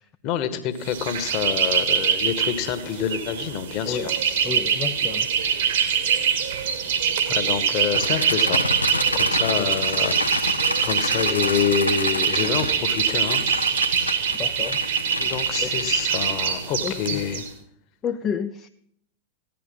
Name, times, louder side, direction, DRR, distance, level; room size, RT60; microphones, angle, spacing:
voice 1, 0.2-4.1 7.3-8.6 9.1-13.4 14.0-14.4 15.2-17.4, left 8 dB, 40° left, 10 dB, 1.5 m, -27 dB
sound 1, 0.8-17.5, right 7 dB, 60° right, 1.7 m, -24 dB
voice 2, 4.4-5.3 9.6-9.7 14.4-14.8 15.6-15.9 16.8-17.2 18.0-18.7, left 7 dB, 25° left, 8 dB, 0.6 m, -30 dB
sound 2, 7.9-16.7, left 2 dB, 85° left, 0.9 m, -29 dB
15.5 x 10.5 x 5.5 m, 0.74 s
figure-of-eight pair, 90°, 0 cm